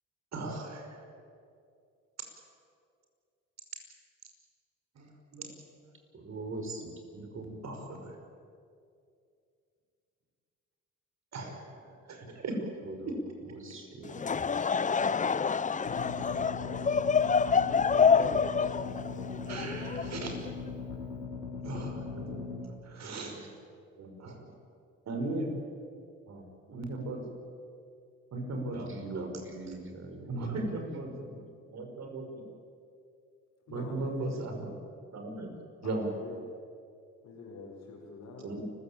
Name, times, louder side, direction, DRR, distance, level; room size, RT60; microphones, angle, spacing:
voice 1, 0.3-1.0 5.0-5.6 7.6-8.2 11.3-12.6 13.0-13.1 19.5-20.3 21.6-22.5 22.8-23.5 24.0-24.5 25.1-25.5 26.3-27.2 28.3-29.3 30.3-31.4 31.7-32.4 33.7-34.5 35.1-35.5 35.8-36.1 38.4-38.6, right 2 dB, 60° right, 4 dB, 5.5 m, -37 dB
voice 2, 6.1-7.6 12.8-13.1 13.4-14.7 18.1-18.2 28.9-30.6, right 2 dB, 45° right, 4 dB, 5.2 m, -42 dB
Laughter / Crowd, 14.0-20.5, left 6 dB, 25° left, 0.6 m, -27 dB
sound 1, 15.9-22.6, left 4 dB, 85° left, 4.4 m, -39 dB
voice 3, 33.7-34.4 35.8-36.4 37.2-38.5, left 4 dB, 70° left, -5 dB, 5.4 m, -46 dB
29.0 x 15.5 x 8.9 m, 2.4 s
cardioid pair, 90°, 30 cm